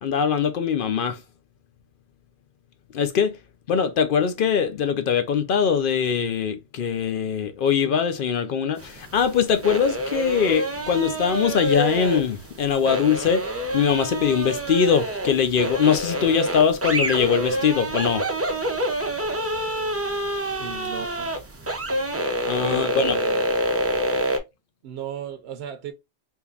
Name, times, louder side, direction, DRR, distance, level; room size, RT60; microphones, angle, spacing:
voice 1, 0.0-1.2 2.9-3.4 3.7-18.3 22.4-23.2, left 7 dB, 60° left, 0.7 m, -22 dB
sound 1, 8.8-24.4, right 1 dB, 20° right, 0.3 m, -27 dB
voice 2, 20.6-21.3 22.6-23.5 24.8-25.9, right 6 dB, 70° right, 0.8 m, -35 dB
3.7 x 2.9 x 2.4 m
omnidirectional pair, 1.2 m